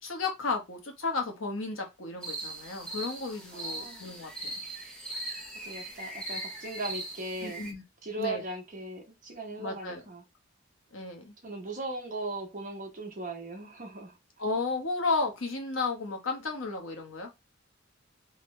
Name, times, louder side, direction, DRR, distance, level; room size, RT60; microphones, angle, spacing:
voice 1, 0.0-4.5 7.4-7.8 8.2-8.4 9.6-10.0 10.9-11.3 14.4-17.3, left 3 dB, 80° left, 1.1 m, -33 dB
sound 1, 2.2-7.7, right 2 dB, 5° left, 0.8 m, -39 dB
voice 2, 3.5-4.1 5.6-7.6 8.0-10.2 11.4-14.1, right 2 dB, 40° right, 1.0 m, -38 dB
3.6 x 2.8 x 3.2 m
head